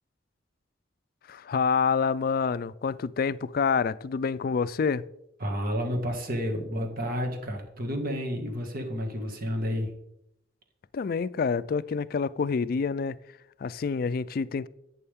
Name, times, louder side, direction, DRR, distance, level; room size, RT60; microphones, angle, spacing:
voice 1, 1.3-5.0 10.9-13.2 13.6-14.7, left 5 dB, 50° left, 0.4 m, -27 dB
voice 2, 5.4-9.9, equal, 50° right, 2.0 m, -30 dB
11.0 x 8.5 x 3.6 m
head